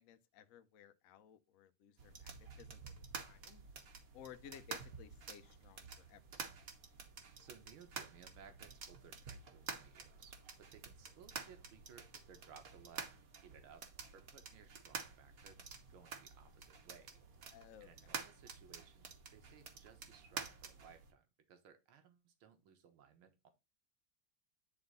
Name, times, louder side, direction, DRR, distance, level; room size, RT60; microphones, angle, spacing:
voice 1, 0.0-2.9 3.2-3.6 4.1-6.2 17.5-17.9, left 9 dB, 65° left, 0.8 m, -57 dB
sound 1, 2.0-21.1, right 5 dB, 50° right, 1.3 m, -50 dB
voice 2, 7.4-13.1 13.4-13.8 14.1-17.1 17.8-23.5, right 7 dB, 75° right, 2.0 m, -61 dB
9.7 x 3.9 x 3.9 m
omnidirectional pair, 2.4 m